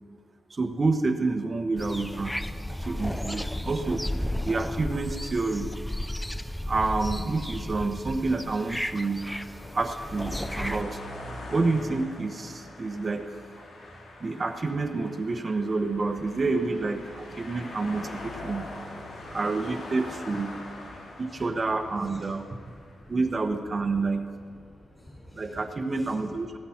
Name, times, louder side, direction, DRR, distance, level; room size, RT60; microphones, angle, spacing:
voice 1, 0.5-2.4 2.7-4.0 4.4-5.7 6.7-9.3 9.7-11.0 11.5-13.4 14.2-18.6 19.3-20.5 21.2-22.4 23.1-24.2 25.3-26.6, right 3 dB, 30° right, 6 dB, 1.1 m, -28 dB
sound 1, 1.8-10.8, left 1 dB, 5° left, 0.4 m, -33 dB
sound 2, 7.9-23.1, left 1 dB, 90° left, 3.2 m, -43 dB
voice 2, 18.8-19.3 20.6-20.7 21.1-21.5 22.0-22.2 22.5-23.1 24.7-25.5 25.9-26.1, left 1 dB, 20° left, -2 dB, 4.2 m, -50 dB
16.5 x 12.5 x 5.8 m, 2.1 s
wide cardioid pair, 130°, 0 cm